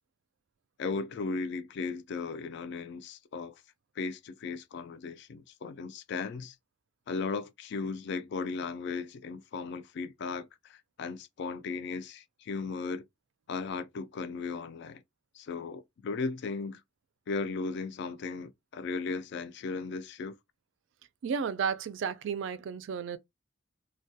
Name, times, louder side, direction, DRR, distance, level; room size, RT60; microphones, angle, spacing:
voice 1, 0.8-3.6 4.0-6.6 7.1-13.0 13.5-15.0 15.3-16.8 17.3-20.4, left 4 dB, 60° left, 0.3 m, -36 dB
voice 2, 21.2-23.2, right 6 dB, 65° right, 0.3 m, -33 dB
2.2 x 2.2 x 2.6 m
head